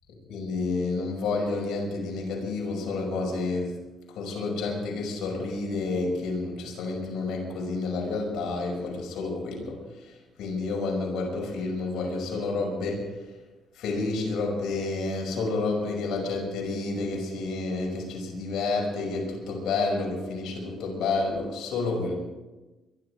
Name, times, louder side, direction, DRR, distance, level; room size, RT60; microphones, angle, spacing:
voice 1, 0.3-3.8 4.1-13.1 13.8-22.1, left 3 dB, 80° left, 0 dB, 5.7 m, -30 dB
23.0 x 12.0 x 4.9 m, 1.1 s
cardioid pair, 90°, 0 cm